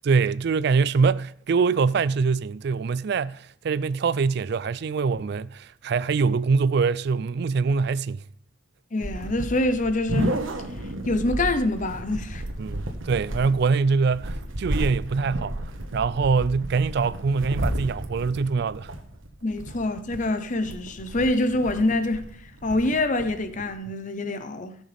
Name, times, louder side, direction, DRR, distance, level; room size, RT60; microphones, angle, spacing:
voice 1, 0.0-8.2 12.6-15.5 15.9-18.9, right 5 dB, 55° right, 0.4 m, -24 dB
voice 2, 8.9-10.4 11.1-12.4 19.4-22.3 22.6-24.7, left 2 dB, 40° left, 0.8 m, -25 dB
sound 1, 9.0-23.7, right 1 dB, 75° right, 1.4 m, -32 dB
17.5 x 6.3 x 3.5 m
head